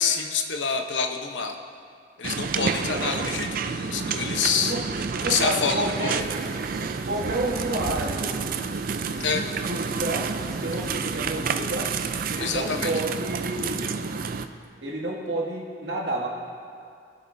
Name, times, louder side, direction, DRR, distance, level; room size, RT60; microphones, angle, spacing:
voice 1, 0.0-1.6 2.2-6.2 9.2-9.4 12.4-12.9, left 5 dB, 85° left, 4 dB, 0.9 m, -27 dB
sound 1, 2.2-14.4, right 5 dB, 50° right, 0.4 m, -29 dB
voice 2, 5.1-6.3 7.1-8.4 9.2-11.9 12.3-13.9 14.8-16.3, right 1 dB, 75° right, -3 dB, 2.1 m, -30 dB
sound 2, 6.2-12.9, equal, ahead, 2.0 m, -47 dB
20.0 x 8.0 x 2.7 m, 2.3 s
head